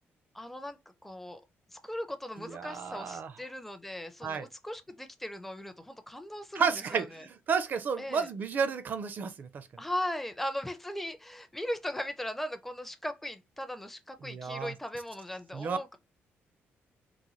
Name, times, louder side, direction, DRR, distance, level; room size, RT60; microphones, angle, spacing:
voice 1, 0.3-1.4 1.7-7.3 8.0-8.3 9.8-16.0, left 1 dB, 5° left, 0.5 m, -38 dB
voice 2, 2.4-3.3 4.2-4.5 6.5-9.7 14.2-14.7 15.5-15.8, right 6 dB, 45° right, 0.5 m, -32 dB
3.9 x 2.2 x 3.0 m
cardioid pair, 155°, 4 cm